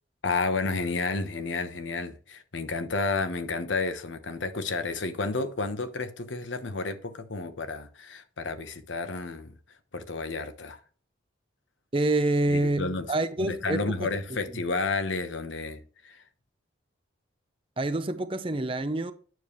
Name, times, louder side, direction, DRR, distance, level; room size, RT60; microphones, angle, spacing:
voice 1, 0.2-9.5 9.9-10.8 12.5-13.1 13.4-16.2, left 3 dB, 75° left, 1.0 m, -31 dB
voice 2, 11.9-14.6 17.8-19.1, right 2 dB, 25° right, 0.6 m, -27 dB
9.3 x 7.1 x 3.1 m
head